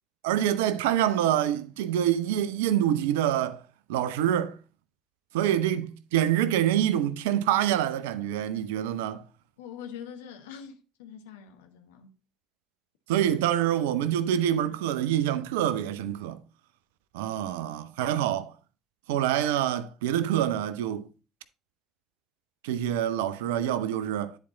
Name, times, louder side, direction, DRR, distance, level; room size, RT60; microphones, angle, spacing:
voice 1, 0.2-3.6 3.9-4.5 5.3-9.2 13.1-16.4 17.1-18.5 19.1-21.1 22.6-24.4, right 11 dB, 75° right, 0.5 m, -26 dB
voice 2, 9.6-12.1, left 8 dB, 75° left, 1.0 m, -44 dB
10.0 x 4.4 x 4.0 m
figure-of-eight pair, 55°, 0 cm